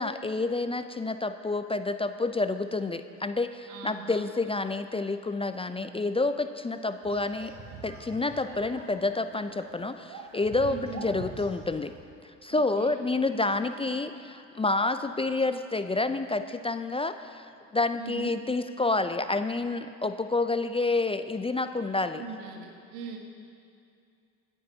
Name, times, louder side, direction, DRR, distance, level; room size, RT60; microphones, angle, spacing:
voice 1, 0.0-7.5 7.8-11.9 12.4-17.5 17.7-22.2, left 3 dB, 15° left, 10 dB, 0.5 m, -29 dB
voice 2, 3.7-4.3 6.6-6.7 10.7-11.1 12.5-13.0 18.0-18.4 22.1-23.2, right 5 dB, 80° right, 2 dB, 1.7 m, -41 dB
sound 1, 7.0-12.0, right 3 dB, 55° right, 3.3 m, -45 dB
25.0 x 10.0 x 2.8 m, 2.4 s
hypercardioid pair, 60°, 39 cm